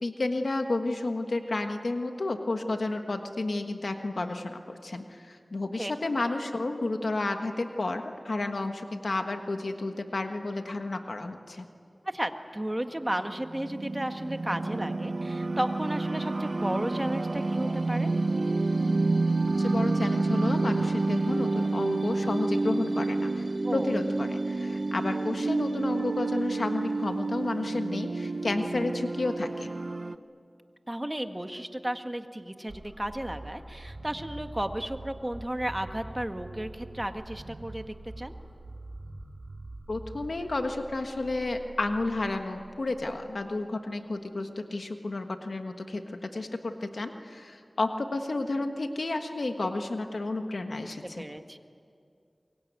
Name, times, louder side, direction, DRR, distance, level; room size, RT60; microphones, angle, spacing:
voice 1, 0.0-11.6 19.6-29.7 39.9-51.2, left 2 dB, 80° left, 5 dB, 1.4 m, -31 dB
voice 2, 12.0-18.1 23.6-23.9 30.9-38.3 50.8-51.6, right 1 dB, 20° right, 7 dB, 1.7 m, -34 dB
sound 1, 13.2-30.2, right 3 dB, 70° right, 0.8 m, -29 dB
sound 2, 32.7-43.6, right 2 dB, 55° right, 2.6 m, -45 dB
24.5 x 23.0 x 9.4 m, 2.4 s
wide cardioid pair, 40°, 0 cm